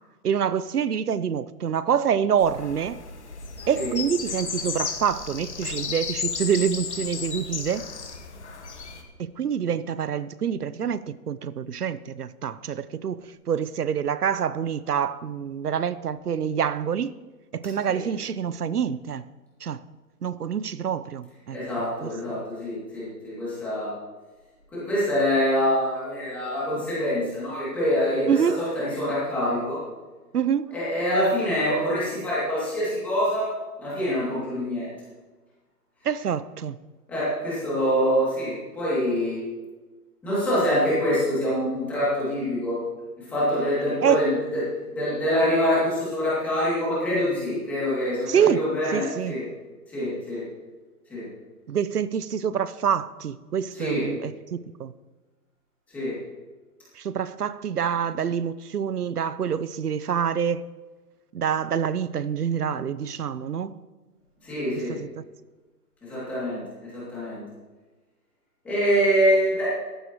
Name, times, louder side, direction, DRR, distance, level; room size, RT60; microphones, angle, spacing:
voice 1, 0.2-3.0 3.7-7.9 9.2-17.1 17.5-19.3 19.6-19.8 20.2-21.6 22.0-22.1 28.3-28.6 30.3-30.8 36.0-36.8 44.0-44.3 48.3-49.4 51.7-54.9 57.0-60.6 61.3-63.8 64.9-65.2, right 8 dB, 70° right, 0.8 m, -26 dB
sound 1, 2.4-9.0, left 5 dB, 45° left, 1.7 m, -33 dB
voice 2, 21.5-24.0 24.7-29.8 30.7-33.5 33.8-34.9 37.1-39.4 40.2-42.8 43.2-44.6 44.9-49.4 49.9-50.5 51.1-51.3 53.7-54.1 55.9-56.2 64.4-65.0 66.0-67.4 68.6-69.7, equal, 5° left, 2.5 m, -25 dB
16.0 x 14.5 x 3.0 m
hypercardioid pair, 180°, 48 cm